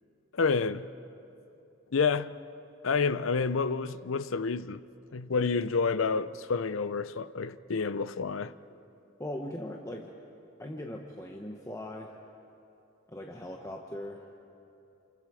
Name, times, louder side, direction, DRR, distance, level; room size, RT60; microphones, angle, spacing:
voice 1, 0.3-0.9 1.9-2.3 2.8-4.8 5.1-8.5, left 5 dB, 75° left, 0.6 m, -29 dB
voice 2, 9.2-10.1 10.6-12.2 13.1-14.2, left 1 dB, 15° left, 1.1 m, -39 dB
29.0 x 28.0 x 4.9 m
head